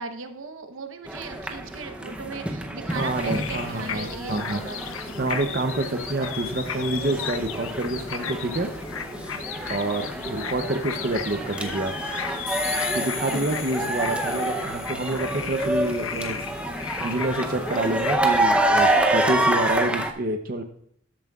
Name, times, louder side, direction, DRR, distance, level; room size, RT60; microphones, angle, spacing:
voice 1, 0.0-4.9 13.8-14.4, right 4 dB, 75° right, 8 dB, 0.9 m, -38 dB
sound 1, 1.1-20.1, right 1 dB, 5° right, 0.6 m, -28 dB
sound 2, 2.9-18.1, left 6 dB, 85° left, 0.8 m, -35 dB
voice 2, 2.9-4.6 5.2-8.7 9.7-11.9 12.9-16.4 17.0-20.6, right 2 dB, 45° right, 6 dB, 0.7 m, -27 dB
sound 3, 12.5-16.0, left 6 dB, 30° left, 2.5 m, -36 dB
13.0 x 7.4 x 2.3 m, 0.69 s
head